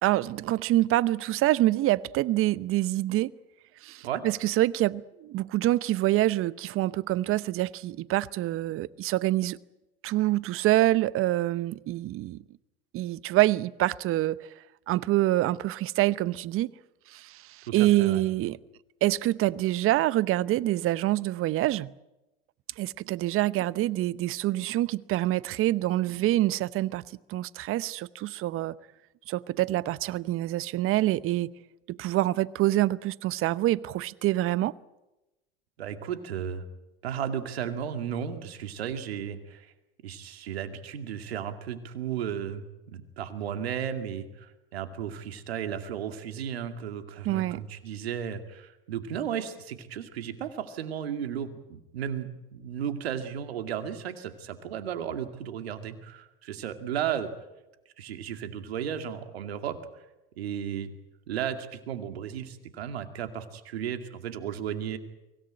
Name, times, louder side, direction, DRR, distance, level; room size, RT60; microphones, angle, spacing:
voice 1, 0.0-3.3 3.8-9.6 10.0-12.4 12.9-14.4 14.9-16.7 17.1-18.6 19.0-21.9 22.8-27.0 27.3-28.7 29.3-31.5 31.9-34.7 47.2-47.6, right 16 dB, 45° right, 0.8 m, -26 dB
voice 2, 17.7-18.2 35.8-36.6 37.0-39.7 40.0-57.3 58.0-59.8 60.4-60.9 61.3-65.0, right 9 dB, 85° right, 2.3 m, -34 dB
24.0 x 17.5 x 8.9 m
hypercardioid pair, 90°, 30 cm